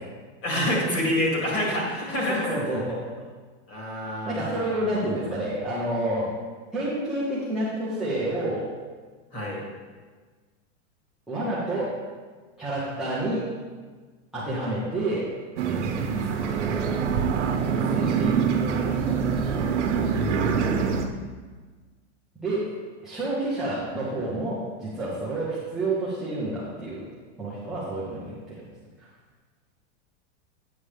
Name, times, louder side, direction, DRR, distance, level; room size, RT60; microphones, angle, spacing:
voice 1, 0.4-2.6 3.7-5.2 9.3-9.6 16.0-16.4 20.2-20.9, left 1 dB, 30° left, -3 dB, 2.2 m, -28 dB
voice 2, 2.3-3.0 4.3-6.3 6.7-8.7 11.3-12.0 12.6-13.5 14.3-15.3 15.6-16.9 17.3-19.4 22.4-22.8 23.0-27.1 27.4-28.6 29.0-29.1, right 1 dB, ahead, -10 dB, 0.4 m, -29 dB
sound 1, 15.6-21.1, right 6 dB, 75° right, 0.9 m, -25 dB
8.7 x 6.9 x 3.2 m, 1.4 s
supercardioid pair, 170°, 36 cm